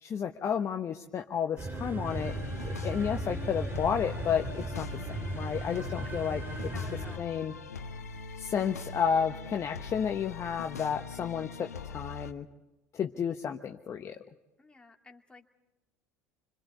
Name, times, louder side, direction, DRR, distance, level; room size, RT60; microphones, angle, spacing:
voice 1, 0.0-2.3 2.6-6.7 7.2-7.5 8.4-12.5 12.9-14.2, left 7 dB, 35° left, 5 dB, 1.1 m, -32 dB
sound 1, 1.6-7.2, right 2 dB, 25° right, 2.6 m, -37 dB
sound 2, 2.0-12.3, left 6 dB, 85° left, 1.1 m, -42 dB
voice 2, 6.6-7.4 14.6-15.5, left 3 dB, 10° left, 3 dB, 2.3 m, -52 dB
27.5 x 26.0 x 4.2 m, 1.0 s
figure-of-eight pair, 70°, 8 cm